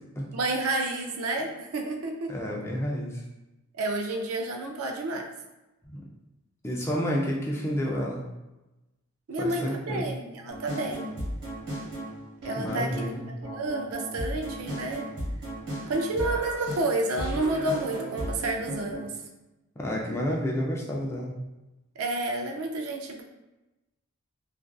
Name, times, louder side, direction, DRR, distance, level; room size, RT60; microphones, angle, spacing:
voice 1, 0.3-2.3 3.8-5.3 9.3-11.1 12.4-12.9 13.3-15.1 15.9-19.1 22.0-23.2, right 2 dB, 75° right, 2 dB, 0.4 m, -30 dB
voice 2, 2.3-3.2 5.8-6.0 6.6-8.2 9.4-10.0 12.6-13.3 19.8-21.3, equal, 10° left, -3 dB, 0.3 m, -30 dB
sound 1, 10.5-19.0, right 1 dB, 50° right, 1.2 m, -35 dB
2.4 x 2.4 x 2.2 m, 1.0 s
head